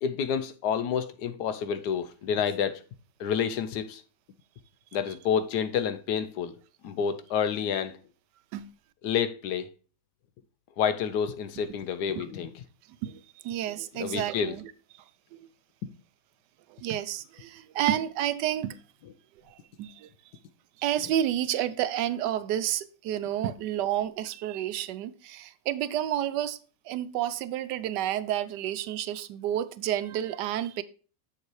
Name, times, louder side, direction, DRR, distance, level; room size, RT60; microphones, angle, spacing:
voice 1, 0.0-2.8 3.2-4.0 4.9-6.6 6.8-8.0 9.0-9.7 10.8-12.6 14.0-14.6, left 7 dB, 75° left, 1.2 m, -29 dB
voice 2, 13.0-14.7 14.9-15.0 16.7-18.8 19.5-20.1 20.8-26.6 26.8-30.8, right 11 dB, 85° right, 1.2 m, -30 dB
7.1 x 6.7 x 3.1 m
omnidirectional pair, 1.8 m